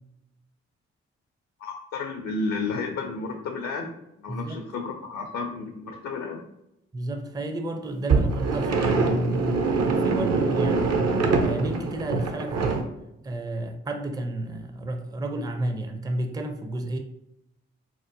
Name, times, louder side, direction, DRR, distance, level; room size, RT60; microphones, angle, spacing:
voice 1, 1.6-3.9 4.2-6.4, left 4 dB, 65° left, 0.5 m, -32 dB
voice 2, 4.3-4.6 6.9-11.0 11.4-12.9 13.2-17.0, right 1 dB, 15° right, 0.4 m, -31 dB
sound 1, 8.1-12.8, right 4 dB, 60° right, 0.6 m, -24 dB
4.3 x 2.1 x 2.6 m
hypercardioid pair, 40°, 30 cm